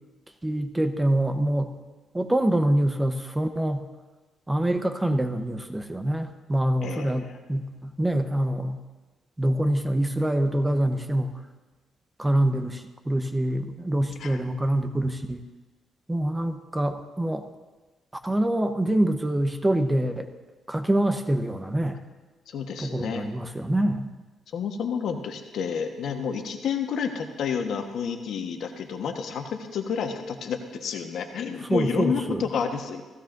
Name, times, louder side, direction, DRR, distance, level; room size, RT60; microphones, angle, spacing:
voice 1, 0.4-1.7 2.1-3.8 4.5-7.2 7.5-8.8 9.4-11.3 12.2-15.4 16.1-17.4 18.2-20.3 20.7-22.0 22.8-24.1 31.7-32.4, right 1 dB, 15° right, 7 dB, 0.9 m, -25 dB
voice 2, 6.8-7.4 14.2-14.4 22.5-23.3 24.5-33.0, left 6 dB, 70° left, 5 dB, 1.3 m, -30 dB
16.0 x 15.5 x 2.6 m, 1.2 s
cardioid pair, 90°, 0 cm